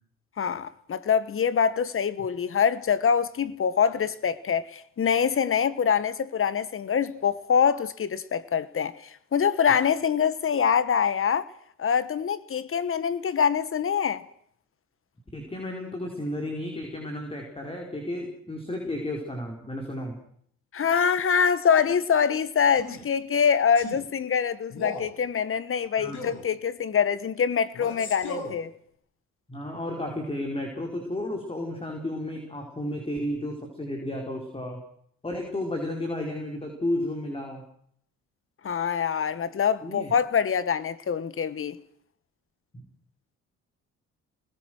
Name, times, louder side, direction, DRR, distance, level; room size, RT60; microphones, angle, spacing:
voice 1, 0.4-11.5 11.8-14.2 20.7-28.7 38.6-41.8, left 7 dB, 45° left, 1.4 m, -24 dB
voice 2, 15.3-20.2 26.0-26.2 29.5-34.8 35.2-37.6 39.8-40.1 42.7-42.8, left 1 dB, 20° left, 4.8 m, -32 dB
Male speech man speaking, 22.7-23.1 23.8-24.0 24.7-25.1 26.1-26.5 27.7-28.6, left 3 dB, 70° left, 6.5 m, -36 dB
26.5 x 20.0 x 6.4 m
cardioid pair, 90°, 30 cm